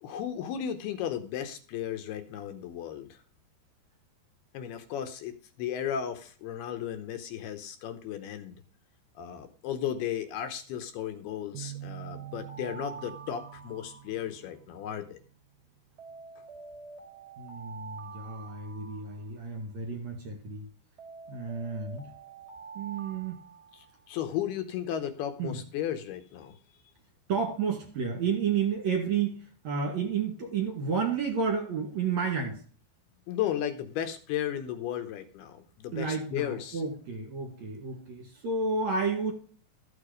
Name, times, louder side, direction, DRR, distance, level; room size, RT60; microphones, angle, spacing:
voice 1, 0.0-3.2 4.5-8.6 9.2-15.2 23.7-26.6 33.3-36.8, left 10 dB, 75° left, 8 dB, 2.7 m, -35 dB
sound 1, 11.5-15.2, right 13 dB, 85° right, 2.2 m, -45 dB
Alarm, 12.0-14.6 16.0-19.6 21.0-24.2, right 5 dB, 20° right, 1.9 m, -47 dB
voice 2, 17.4-20.7 21.3-22.0 22.7-23.4 25.4-25.6 27.3-32.6 35.9-39.3, right 5 dB, 50° right, 3 dB, 2.6 m, -31 dB
13.5 x 6.7 x 5.0 m, 0.42 s
omnidirectional pair, 5.0 m